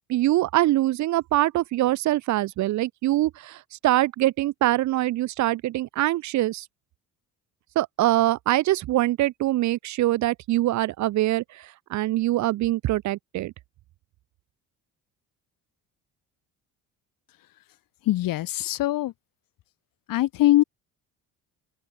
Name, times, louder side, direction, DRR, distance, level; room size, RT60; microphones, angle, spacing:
voice 1, 0.1-6.6 7.8-11.6 11.9-13.5, right 15 dB, 55° right, 0.4 m, -23 dB
voice 2, 18.0-19.1 20.1-20.6, left 15 dB, 65° left, 1.0 m, -22 dB
open air
cardioid pair, 95°, 36 cm